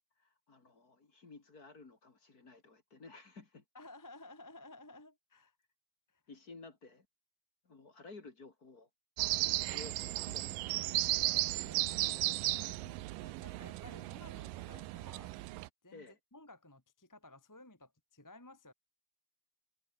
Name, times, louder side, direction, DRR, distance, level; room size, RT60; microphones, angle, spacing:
voice 1, 0.2-3.6 6.3-7.1 7.6-8.9 9.7-11.1 12.8-13.0 15.9-16.2, left 3 dB, 30° left, 2.6 m, -54 dB
voice 2, 3.7-5.5 6.1-6.2 11.6-12.9 13.2-15.3 15.8-16.1 16.3-18.7, left 2 dB, 10° left, 1.3 m, -55 dB
sound 1, 9.2-15.7, right 18 dB, 80° right, 2.4 m, -35 dB
omnidirectional pair, 3.9 m